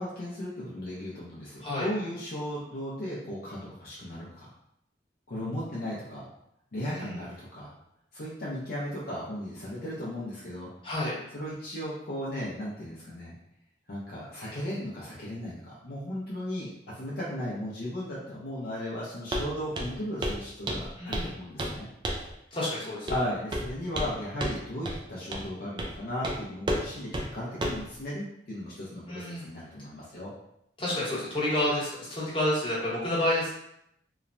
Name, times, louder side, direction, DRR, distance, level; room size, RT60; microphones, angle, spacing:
voice 1, 0.0-4.5 5.3-6.3 6.7-7.7 8.1-10.7 11.3-13.3 13.9-21.9 23.1-30.3, equal, 55° left, -6 dB, 0.5 m, -36 dB
voice 2, 6.8-7.2 10.8-11.1 21.0-21.3 22.5-23.1 29.1-29.5 30.8-33.5, left 1 dB, 30° left, -8 dB, 1.0 m, -29 dB
Walk footsteps, 19.3-19.5 19.7-20.0 20.2-20.4 20.7-21.3 21.6-21.8 22.0-22.3 23.1-23.2 23.5-24.1 24.4-24.6 24.8-25.0 25.3-25.5 25.8-25.9 26.2-26.4 26.7-26.8 27.1-27.3 27.6-27.8, right 1 dB, 25° right, 0.3 m, -31 dB
3.0 x 2.0 x 2.5 m, 0.79 s
head